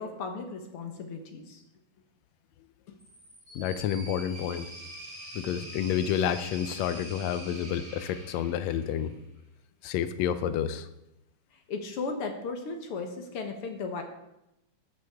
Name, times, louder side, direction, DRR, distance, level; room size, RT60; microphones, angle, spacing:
voice 1, 0.0-1.6 11.7-14.0, left 4 dB, 60° left, 5 dB, 1.6 m, -36 dB
sound 1, 3.0-9.2, right 1 dB, 20° left, 3.7 m, -45 dB
voice 2, 3.5-4.7 5.3-9.1 9.8-10.9, left 9 dB, 80° left, 11 dB, 1.7 m, -29 dB
13.5 x 11.0 x 3.6 m, 0.87 s
omnidirectional pair, 3.7 m